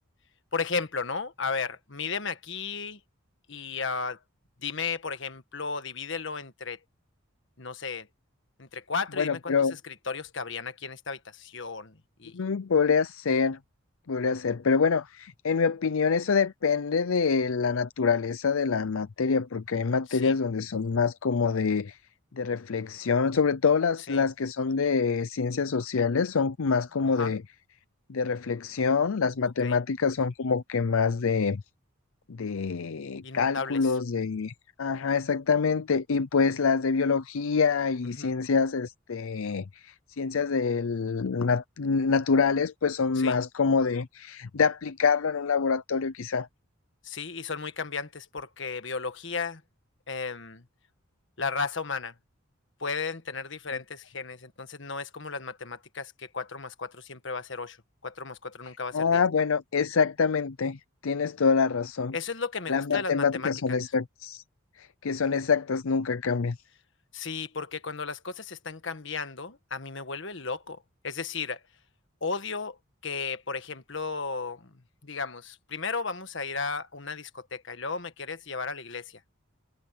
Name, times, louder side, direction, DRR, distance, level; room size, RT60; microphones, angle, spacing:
voice 1, 0.5-3.0 3.5-4.2 4.6-6.8 7.6-8.1 8.6-12.4 20.1-20.4 24.1-24.3 27.2-27.3 29.6-29.8 33.2-33.9 38.0-38.3 43.2-43.4 47.0-49.6 50.1-50.6 51.4-52.1 52.8-57.8 58.0-59.2 62.1-63.8 67.1-70.8 71.0-71.6 72.2-72.8 73.0-79.2, left 4 dB, 60° left, 1.5 m, -34 dB
voice 2, 9.2-9.7 12.3-13.6 14.1-22.0 22.4-27.4 28.1-31.6 32.3-34.5 34.8-46.5 58.9-62.1 62.7-64.4 64.8-66.6, left 5 dB, 75° left, 0.6 m, -26 dB
head